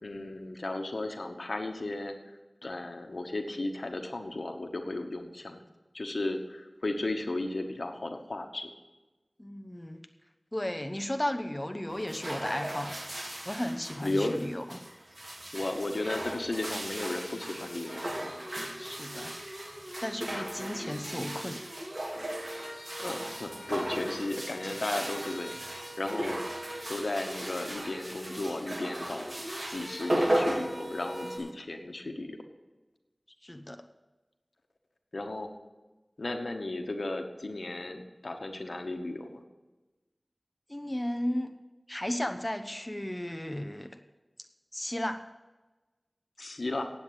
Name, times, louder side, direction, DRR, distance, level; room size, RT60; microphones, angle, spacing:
voice 1, 0.0-2.1 2.6-5.6 5.9-8.7 14.0-14.4 15.5-18.1 19.9-20.0 20.3-20.4 23.0-25.5 26.0-26.4 26.9-29.4 29.7-32.4 35.1-35.5 36.2-39.4 46.4-46.8, left 2 dB, 80° left, 5 dB, 1.1 m, -35 dB
voice 2, 9.4-10.0 10.5-13.0 13.4-14.8 18.8-19.3 20.0-21.6 33.4-33.8 40.7-41.6 41.9-44.0 44.7-45.2, left 1 dB, 20° left, 6 dB, 0.8 m, -34 dB
sound 1, 11.9-31.5, right 1 dB, 50° right, 2.1 m, -36 dB
sound 2, 16.9-31.4, equal, 35° right, 4.7 m, -45 dB
9.1 x 8.0 x 8.0 m, 1.1 s
wide cardioid pair, 45°, 0 cm